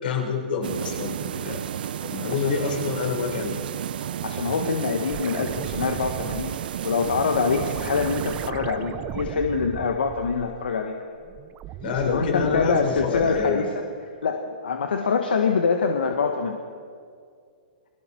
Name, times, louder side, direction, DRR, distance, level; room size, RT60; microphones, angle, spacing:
voice 1, 0.0-1.6 2.0-3.5 11.8-13.6, left 5 dB, 70° left, 1 dB, 4.9 m, -27 dB
sound 1, 0.6-8.5, right 10 dB, 65° right, 0.7 m, -32 dB
voice 2, 4.2-10.9 11.9-13.7 14.2-16.6, left 5 dB, 90° left, 4 dB, 1.6 m, -25 dB
sound 2, 5.0-10.8 11.2-13.7 16.1-16.2, right 12 dB, 25° right, 0.7 m, -37 dB
29.0 x 21.0 x 4.6 m, 2.2 s
hypercardioid pair, 145°, 5 cm